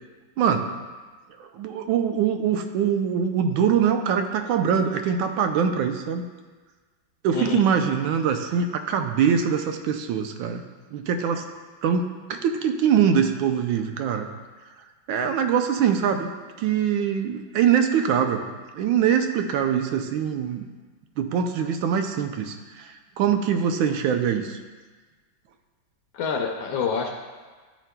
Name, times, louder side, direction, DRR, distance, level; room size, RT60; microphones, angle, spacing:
voice 1, 0.4-0.7 1.5-6.2 7.2-10.6 10.9-11.4 11.8-14.3 15.1-16.3 16.6-18.5 18.7-20.7 21.2-24.6, right 7 dB, 85° right, 6 dB, 1.3 m, -23 dB
voice 2, 26.1-27.1, left 6 dB, 80° left, 1 dB, 1.3 m, -27 dB
11.5 x 5.0 x 2.2 m, 1.4 s
omnidirectional pair, 2.1 m